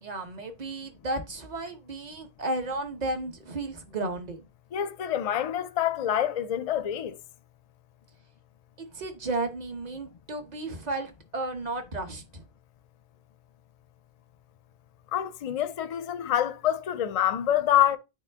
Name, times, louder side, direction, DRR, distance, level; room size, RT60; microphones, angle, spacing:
voice 1, 0.0-4.5 8.8-12.4, right 2 dB, 45° right, 1.1 m, -33 dB
voice 2, 4.7-7.2 15.1-18.0, left 11 dB, 50° left, 0.5 m, -26 dB
8.9 x 3.2 x 3.5 m
omnidirectional pair, 1.1 m